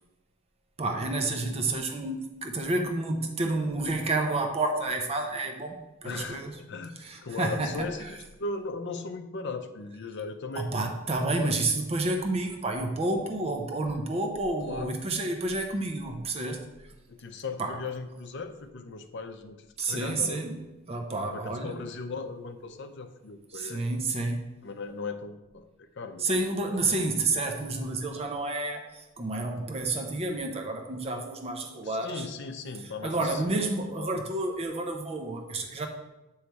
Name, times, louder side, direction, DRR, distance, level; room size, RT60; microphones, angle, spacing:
voice 1, 0.8-6.6 7.0-8.1 10.5-16.9 17.6-17.8 19.8-20.6 20.9-21.8 23.5-24.5 26.2-32.3 33.0-35.9, right 2 dB, 30° right, 4 dB, 0.5 m, -30 dB
voice 2, 6.0-7.0 7.2-10.7 11.4-11.6 14.6-14.9 17.1-20.5 21.3-23.8 24.6-26.8 31.8-33.6 34.0-34.1, left 3 dB, 55° left, 7 dB, 0.5 m, -38 dB
8.0 x 3.1 x 4.5 m, 1.0 s
head